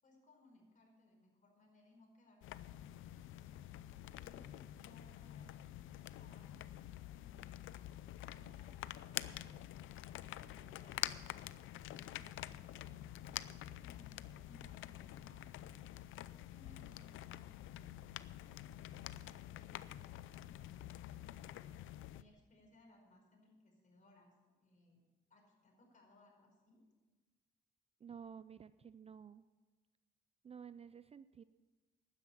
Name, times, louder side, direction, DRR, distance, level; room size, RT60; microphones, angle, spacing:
voice 1, 0.0-3.7 4.2-7.8 8.2-9.6 10.2-12.9 13.2-14.1 14.4-15.8 16.5-18.5 19.1-21.1 22.1-25.0 25.3-26.8, left 2 dB, 40° left, 0 dB, 4.9 m, -66 dB
sound 1, 2.4-22.2, left 13 dB, 80° left, 0.5 m, -48 dB
voice 2, 28.0-29.4 30.4-31.4, right 7 dB, 30° right, 15 dB, 0.4 m, -52 dB
12.0 x 9.9 x 7.1 m, 1.3 s
cardioid pair, 90°, 20 cm